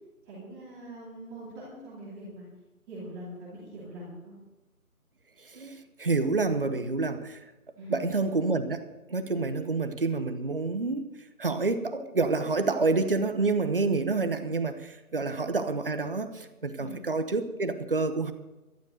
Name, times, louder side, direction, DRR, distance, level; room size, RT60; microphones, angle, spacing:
voice 1, 0.3-2.4 2.9-4.3 7.8-8.1 15.1-15.2 16.8-17.0, right 1 dB, 5° right, -8 dB, 2.6 m, -43 dB
voice 2, 5.4-7.4 7.9-11.1 11.4-18.3, right 3 dB, 40° right, 10 dB, 1.0 m, -28 dB
12.0 x 11.5 x 6.4 m, 1.0 s
figure-of-eight pair, 165°, 44 cm